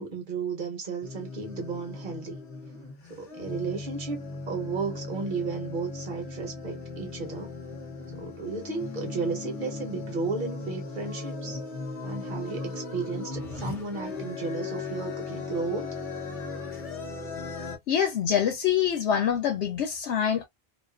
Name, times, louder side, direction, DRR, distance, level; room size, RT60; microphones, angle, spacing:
voice 1, 0.0-2.4 3.1-7.6 8.2-11.6 12.0-15.9, right 4 dB, 50° right, 1.1 m, -34 dB
sound 1, 1.0-17.8, left 3 dB, 35° left, 0.7 m, -37 dB
voice 2, 17.9-20.5, left 8 dB, 85° left, 0.9 m, -25 dB
2.5 x 2.4 x 2.2 m
omnidirectional pair, 1.1 m